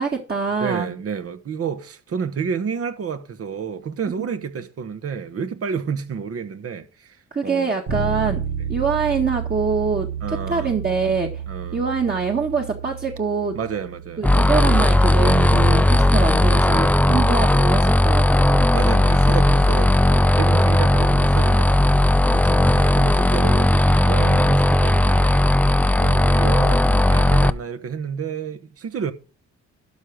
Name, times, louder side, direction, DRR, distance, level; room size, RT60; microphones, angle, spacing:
voice 1, 0.0-0.9 4.2-4.3 7.3-8.4 8.7-11.4 11.7-13.6 14.2-18.7 22.3-22.8, right 5 dB, 30° right, 1.7 m, -24 dB
voice 2, 0.6-7.1 7.4-7.8 10.2-10.7 11.5-11.8 13.5-14.5 17.1-17.3 18.7-22.1 22.7-25.6 26.0-29.1, right 6 dB, 50° right, 1.2 m, -30 dB
Bass guitar, 7.9-17.7, right 7 dB, 90° right, 6.7 m, -32 dB
sound 1, 14.2-27.5, left 1 dB, 5° left, 0.4 m, -16 dB
12.0 x 5.1 x 6.2 m
cardioid pair, 90°, 30 cm